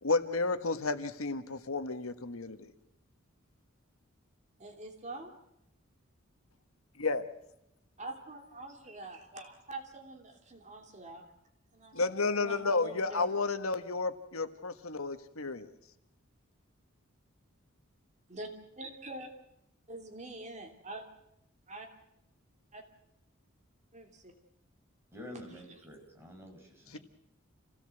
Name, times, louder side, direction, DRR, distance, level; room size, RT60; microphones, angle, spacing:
voice 1, 0.0-2.7 7.0-7.2 11.9-15.7 26.9-27.0, left 3 dB, 90° left, 9 dB, 1.6 m, -32 dB
voice 2, 4.6-5.3 8.0-11.2 11.7-12.1 12.4-13.3 18.3-18.5 18.8-19.3 19.9-21.0 21.7-21.9 22.7-22.8 23.9-24.3 25.5-25.8, right 2 dB, 35° right, 4 dB, 3.1 m, -45 dB
voice 3, 25.1-27.0, left 1 dB, 10° right, 1 dB, 6.0 m, -48 dB
28.5 x 17.5 x 7.9 m, 0.84 s
head